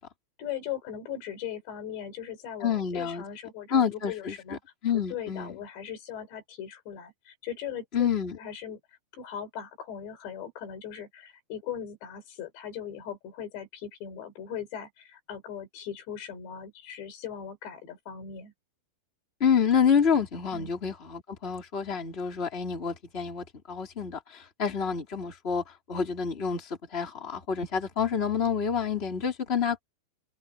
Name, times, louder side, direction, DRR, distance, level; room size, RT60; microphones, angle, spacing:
voice 1, 0.4-4.6 4.9-8.1 8.4-8.8 9.1-18.5 20.5-20.7, left 9 dB, 85° left, 6.2 m, -39 dB
voice 2, 2.6-3.2 3.7-4.6 4.8-5.6 7.9-8.4 19.4-25.6 25.9-29.8, left 7 dB, 15° left, 3.2 m, -28 dB
omnidirectional pair, 4.9 m